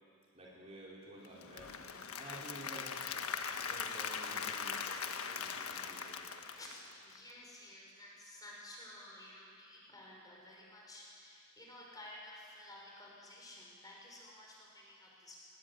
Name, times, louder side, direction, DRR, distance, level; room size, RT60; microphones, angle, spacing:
voice 1, 0.3-1.8 2.2-2.9 3.6-6.2, right 1 dB, 30° right, -4 dB, 4.6 m, -52 dB
Applause / Crowd, 1.2-7.3, left 6 dB, 70° left, 1.4 m, -41 dB
voice 2, 7.0-15.4, left 1 dB, 15° left, -3 dB, 5.9 m, -53 dB
23.0 x 20.0 x 9.7 m, 2.4 s
head